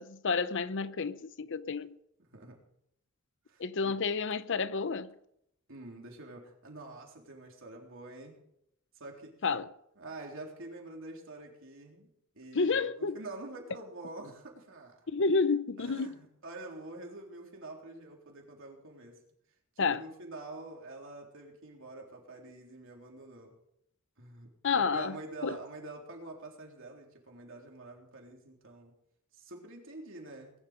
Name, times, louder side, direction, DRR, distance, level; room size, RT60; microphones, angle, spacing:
voice 1, 0.0-1.9 3.6-5.1 9.4-9.7 12.5-13.2 15.1-16.2 19.8-20.0 24.6-25.2 25.4-25.6, left 4 dB, 55° left, 0.7 m, -30 dB
voice 2, 3.5-4.0 5.7-8.4 9.0-9.4 10.0-12.1 12.3-14.9 15.8-19.2 19.8-23.5 24.2-24.5 24.7-28.9 29.3-30.5, right 2 dB, 60° right, 3.7 m, -46 dB
20.5 x 11.0 x 5.1 m
head